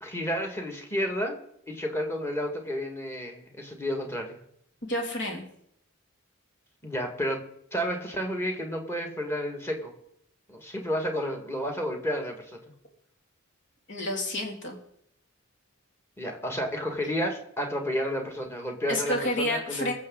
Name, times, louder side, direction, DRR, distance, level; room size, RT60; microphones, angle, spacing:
voice 1, 0.0-1.4 1.7-4.4 6.8-7.4 7.7-9.9 10.5-12.6 16.2-19.9, equal, 10° left, 2 dB, 2.1 m, -31 dB
voice 2, 4.9-5.4 13.9-14.8 18.9-19.9, left 1 dB, 55° left, 1 dB, 2.9 m, -29 dB
22.0 x 7.4 x 4.0 m, 0.71 s
head